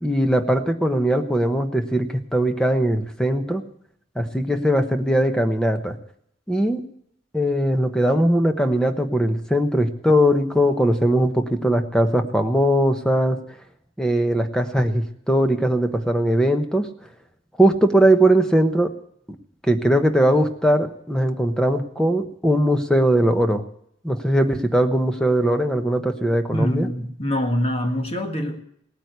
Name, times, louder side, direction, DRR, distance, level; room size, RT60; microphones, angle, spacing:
voice 1, 0.0-3.6 4.1-6.0 6.5-6.8 7.3-13.4 14.0-16.9 17.6-18.9 19.6-23.6 24.0-26.9, right 1 dB, 5° left, 6 dB, 1.1 m, -20 dB
voice 2, 26.5-28.6, equal, 30° left, 4 dB, 1.8 m, -24 dB
18.0 x 9.3 x 8.1 m, 0.70 s
head